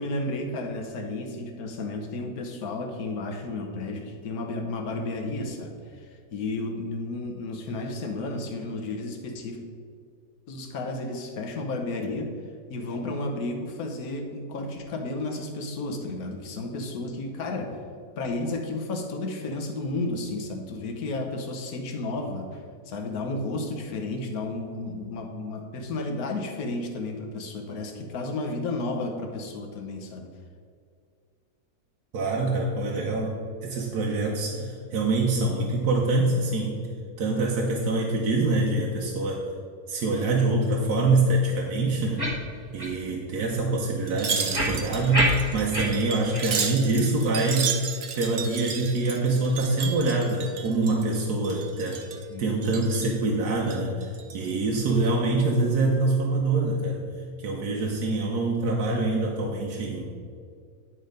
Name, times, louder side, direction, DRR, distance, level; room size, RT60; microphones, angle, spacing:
voice 1, 0.0-9.6 10.5-12.3 12.7-17.8 18.2-30.3 52.3-52.8, left 2 dB, 70° left, 4 dB, 1.4 m, -32 dB
voice 2, 32.1-36.8 37.2-39.5 39.9-42.3 42.7-47.8 48.1-52.0 52.4-57.0 57.4-60.1, right 2 dB, 80° right, -1 dB, 1.4 m, -25 dB
sound 1, 42.2-42.4 42.8-42.9 43.4-43.5 44.5-45.9 46.3-46.4 46.9-47.0, right 1 dB, 15° right, 1.5 m, -26 dB
Wind chime, 44.1-51.2 51.4-52.3 52.6-53.2 53.6-54.5 54.9-55.1, right 6 dB, 50° right, 0.8 m, -33 dB
9.8 x 4.4 x 5.1 m, 2.2 s
omnidirectional pair, 1.6 m